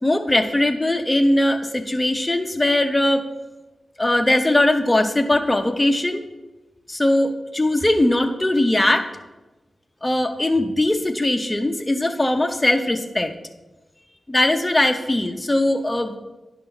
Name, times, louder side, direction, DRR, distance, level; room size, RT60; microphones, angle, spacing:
voice 1, 0.0-3.3 4.0-6.2 6.9-9.1 10.0-13.3 14.3-16.2, left 1 dB, 20° left, 6 dB, 0.8 m, -20 dB
10.5 x 5.6 x 4.0 m, 1.1 s
cardioid pair, 60°, 0 cm